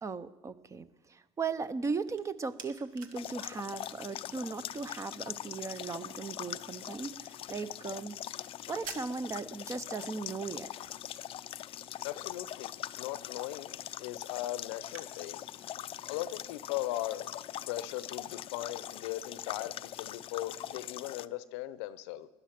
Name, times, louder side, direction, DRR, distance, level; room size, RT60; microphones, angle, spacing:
voice 1, 0.0-8.2 8.7-10.7, right 4 dB, 20° right, 0.6 m, -37 dB
sound 1, 1.3-15.1, right 6 dB, 70° right, 1.4 m, -55 dB
sound 2, 3.2-21.3, left 12 dB, 40° left, 0.4 m, -42 dB
voice 2, 12.0-12.7 13.0-15.4 16.1-17.3 17.7-22.3, left 14 dB, 90° left, 0.7 m, -38 dB
16.5 x 11.5 x 5.9 m
supercardioid pair, 115°, 14 cm